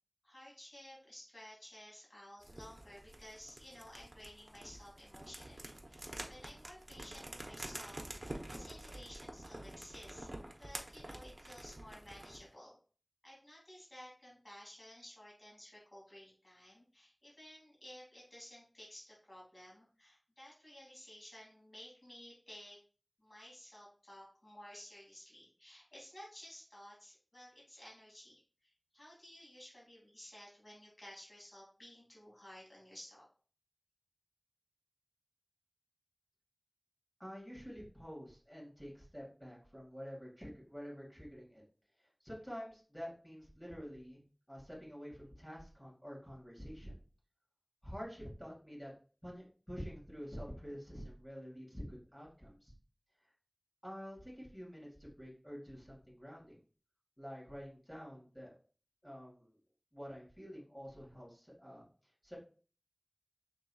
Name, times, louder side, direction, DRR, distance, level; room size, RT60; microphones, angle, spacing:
voice 1, 0.2-10.3 10.6-12.8 13.2-22.8 23.2-33.3, left 1 dB, 70° left, -4 dB, 2.4 m, -55 dB
sound 1, 2.4-12.5, right 1 dB, 65° right, 0.8 m, -48 dB
voice 2, 37.2-41.6 42.0-44.2 44.5-47.0 47.8-48.9 49.2-52.7 53.8-56.6 57.2-58.5 59.0-59.5 59.9-61.9 62.2-62.4, equal, 15° left, -5 dB, 2.0 m, -48 dB
5.7 x 3.7 x 2.3 m, 0.39 s
wide cardioid pair, 45°, 0 cm